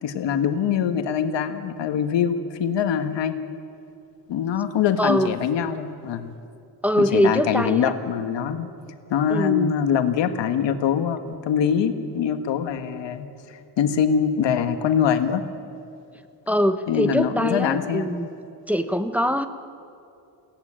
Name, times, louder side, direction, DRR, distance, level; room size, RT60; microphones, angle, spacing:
voice 1, 0.0-3.3 4.3-6.3 7.0-8.7 9.1-15.4 16.9-18.2, left 8 dB, 80° left, 8 dB, 1.6 m, -23 dB
voice 2, 5.0-5.3 6.8-7.9 9.3-9.7 16.5-18.3 18.7-19.5, equal, 5° right, 8 dB, 1.2 m, -22 dB
22.5 x 17.0 x 10.0 m, 2.6 s
cardioid pair, 80°, 43 cm